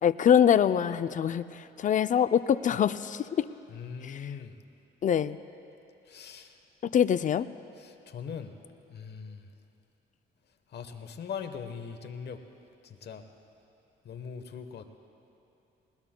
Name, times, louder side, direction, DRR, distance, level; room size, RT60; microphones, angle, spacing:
voice 1, 0.0-3.4 4.0-4.2 5.0-5.4 6.9-7.5, left 9 dB, 40° left, 13 dB, 0.4 m, -24 dB
voice 2, 3.7-4.5 6.1-6.5 7.8-8.5 8.9-9.5 10.7-12.4 12.8-13.2 14.0-14.9, left 6 dB, 55° left, 7 dB, 1.1 m, -40 dB
20.5 x 20.0 x 2.2 m, 2.8 s
cardioid pair, 90°, 20 cm